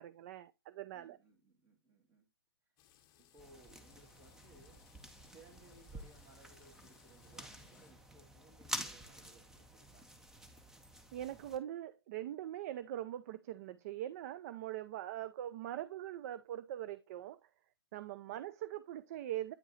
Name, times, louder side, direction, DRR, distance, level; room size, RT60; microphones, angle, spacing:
voice 1, 0.0-1.2 11.1-17.5 17.9-19.5, right 12 dB, 40° right, 0.4 m, -42 dB
voice 2, 0.9-2.3 3.2-4.8 5.3-10.1, right 2 dB, 20° right, 2.0 m, -63 dB
sound 1, 2.8-7.9, left 11 dB, 30° left, 0.8 m, -67 dB
sound 2, 3.4-11.6, right 1 dB, 5° right, 0.6 m, -49 dB
8.9 x 4.7 x 2.8 m
hypercardioid pair, 135°, 13 cm